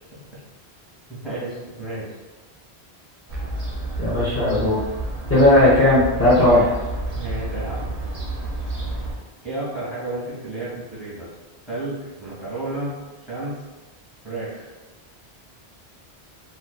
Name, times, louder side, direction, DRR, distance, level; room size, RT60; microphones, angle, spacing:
voice 1, 1.1-2.1 7.1-7.9 9.4-11.3 11.7-12.9 13.2-13.6 14.2-14.7, right 2 dB, ahead, -9 dB, 0.9 m, -31 dB
Fowl / Gull seagull, 3.3-9.2, right 2 dB, 45° right, 0.6 m, -30 dB
voice 2, 4.0-4.8 5.3-6.7, left 1 dB, 20° left, -10 dB, 0.4 m, -16 dB
2.5 x 2.4 x 2.3 m, 1.2 s
omnidirectional pair, 1.1 m